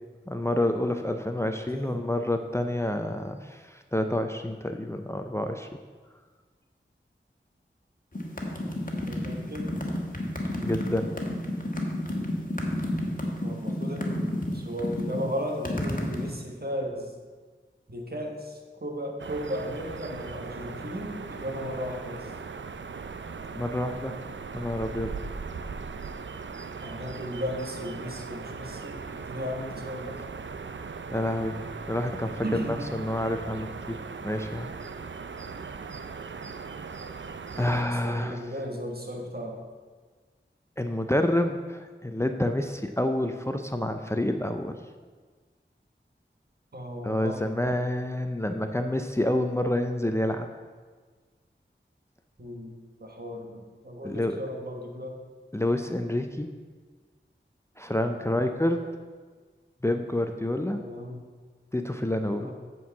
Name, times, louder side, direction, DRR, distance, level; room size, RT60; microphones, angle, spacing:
voice 1, 0.3-5.7 10.6-11.1 11.8-11.9 23.5-24.1 24.5-25.2 31.1-31.6 31.9-34.7 37.6-38.4 40.8-44.8 47.0-50.5 54.0-54.4 55.5-56.5 57.8-58.8 59.8-60.8 61.7-62.5, left 1 dB, 15° left, 6 dB, 0.5 m, -28 dB
voice 2, 1.4-2.0 9.1-9.8 13.4-17.1 17.9-22.3 26.8-30.2 32.4-32.8 37.9-39.6 46.7-47.4 52.4-52.7 53.0-55.2 58.2-58.6 60.7-61.2 62.2-62.5, equal, 50° right, 2 dB, 1.4 m, -35 dB
sound 1, 8.1-16.3, left 1 dB, 45° left, 1.5 m, -30 dB
sound 2, 19.2-37.8, right 5 dB, 70° right, 0.5 m, -39 dB
8.5 x 4.6 x 7.1 m, 1.5 s
wide cardioid pair, 45°, 20 cm